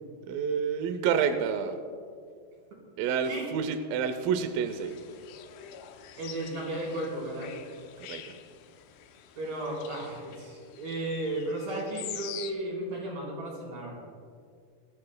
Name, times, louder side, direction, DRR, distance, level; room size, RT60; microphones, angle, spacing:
voice 1, 0.2-1.8 3.0-5.0 8.0-8.4, right 7 dB, 80° right, 8 dB, 2.2 m, -29 dB
sound 1, 4.7-12.5, left 10 dB, 80° left, 2.1 m, -46 dB
voice 2, 6.2-7.5 9.4-14.0, right 1 dB, 60° right, -4 dB, 5.5 m, -34 dB
23.5 x 14.0 x 2.2 m, 2.2 s
omnidirectional pair, 4.8 m